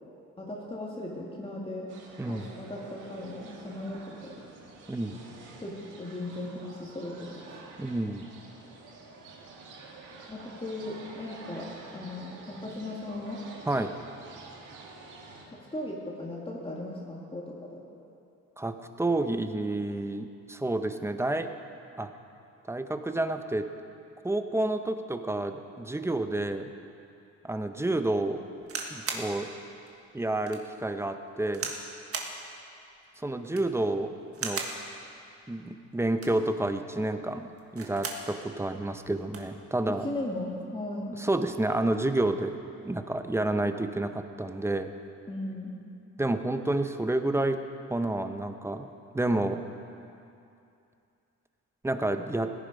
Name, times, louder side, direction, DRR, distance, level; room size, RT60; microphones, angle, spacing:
voice 1, 0.4-1.9 2.3-4.3 5.6-7.4 10.3-11.7 11.9-13.4 15.5-17.8 39.9-41.1 45.3-45.7, left 1 dB, 20° left, -3 dB, 1.9 m, -37 dB
sound 1, 1.9-15.4, right 3 dB, 90° right, 1.9 m, -48 dB
voice 2, 2.2-2.5 4.9-5.2 7.8-8.3 13.7-13.9 18.6-21.5 22.0-22.1 22.7-23.7 24.2-26.7 27.4-28.4 28.9-29.5 30.1-31.7 33.2-34.1 34.4-34.6 35.5-40.1 41.2-44.9 46.2-47.6 47.9-48.9 49.1-49.6 51.8-52.5, right 2 dB, 10° right, 8 dB, 0.7 m, -29 dB
sound 2, 28.6-29.3 29.9-30.0 30.5-30.6 31.5-31.8 32.1-32.4 33.4-33.8 34.3-34.8 36.0-36.5 37.6-38.3 38.7-38.8 39.0-39.5 40.4-40.6, right 4 dB, 50° right, 1.6 m, -36 dB
16.5 x 10.5 x 5.1 m, 2.6 s
cardioid pair, 90°, 30 cm